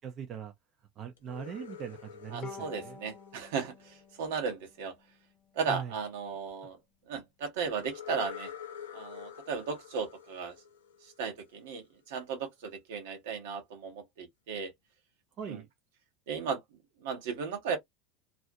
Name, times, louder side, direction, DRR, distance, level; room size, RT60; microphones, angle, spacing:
voice 1, 0.0-0.5 1.0-3.0 5.7-5.9 15.4-15.7, right 8 dB, 45° right, 0.5 m, -40 dB
sound 1, 1.2-4.1 7.8-11.5, left 9 dB, 90° left, 0.4 m, -47 dB
voice 2, 2.3-4.9 5.5-6.8 7.1-8.5 8.9-10.5 11.0-14.7 15.5-15.6 16.3-16.6 17.0-17.8, right 5 dB, 75° right, 0.9 m, -35 dB
Bowed string instrument, 2.4-5.7, left 5 dB, 45° left, 0.7 m, -50 dB
2.5 x 2.0 x 2.6 m
hypercardioid pair, 95°, 0 cm